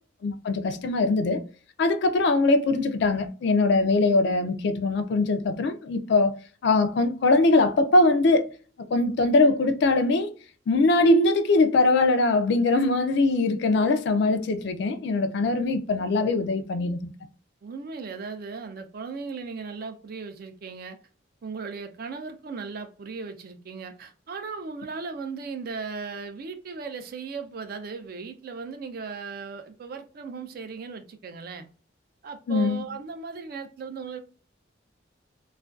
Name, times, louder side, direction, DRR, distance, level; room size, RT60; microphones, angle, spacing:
voice 1, 0.2-1.4 1.8-6.4 6.6-8.5 8.9-10.3 10.7-17.1 32.5-32.8, left 2 dB, 60° left, 0.4 m, -22 dB
voice 2, 17.6-21.0 21.4-31.7 32.2-34.2, right 4 dB, 50° right, 0.4 m, -37 dB
2.4 x 2.2 x 2.3 m
head